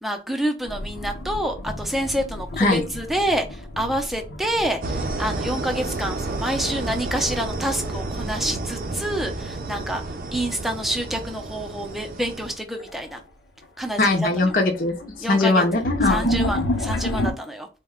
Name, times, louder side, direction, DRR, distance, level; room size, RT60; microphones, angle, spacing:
voice 1, 0.0-10.0 10.3-13.2 13.8-14.5 15.2-15.6 16.1-17.7, right 1 dB, ahead, 3 dB, 0.5 m, -27 dB
sound 1, 0.7-7.5 7.8-8.6 10.3-10.7 11.2-11.3 12.3-12.4 12.8-13.2 13.6-17.3, left 1 dB, 90° left, 0.7 m, -30 dB
sound 2, 4.8-12.6, right 2 dB, 50° right, 0.5 m, -31 dB
voice 2, 14.0-16.3, left 2 dB, 50° left, 2 dB, 0.7 m, -21 dB
4.0 x 2.1 x 3.5 m, 0.31 s
head